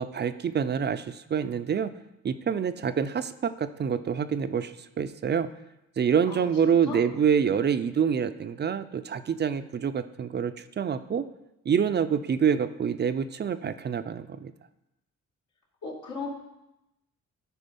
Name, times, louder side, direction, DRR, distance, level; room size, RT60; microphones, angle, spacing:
voice 1, 0.0-1.9 2.2-5.5 6.0-11.3 11.7-14.5, right 7 dB, 35° right, 11 dB, 0.5 m, -26 dB
voice 2, 6.3-7.0 15.8-16.3, left 4 dB, 75° left, -3 dB, 2.6 m, -37 dB
13.0 x 4.3 x 5.3 m, 0.93 s
cardioid pair, 90°, 30 cm